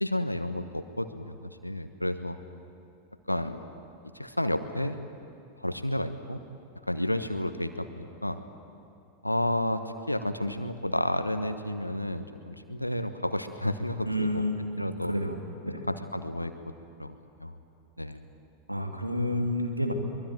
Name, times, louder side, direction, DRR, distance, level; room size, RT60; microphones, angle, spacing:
voice 1, 0.0-2.4 3.3-3.7 4.1-5.0 5.6-6.4 6.9-8.4 9.2-14.5 14.8-15.1 15.9-16.5 17.0-17.6 18.0-18.2, left 1 dB, 85° left, 10 dB, 1.1 m, -31 dB
voice 2, 14.1-15.4 15.6-15.8 18.7-19.9, left 1 dB, 90° right, 4 dB, 2.4 m, -30 dB
24.0 x 21.5 x 9.0 m, 2.6 s
figure-of-eight pair, 90°, 0 cm